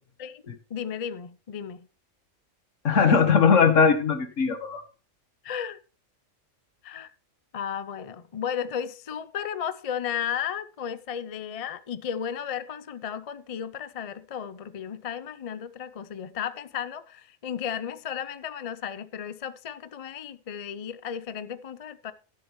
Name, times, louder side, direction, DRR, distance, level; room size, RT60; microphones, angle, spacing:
voice 1, 0.7-1.9 5.4-5.8 6.8-7.1 7.5-22.1, left 8 dB, 45° left, 0.5 m, -34 dB
voice 2, 2.8-4.8, left 5 dB, 70° left, 1.6 m, -20 dB
12.5 x 11.0 x 3.1 m
omnidirectional pair, 1.4 m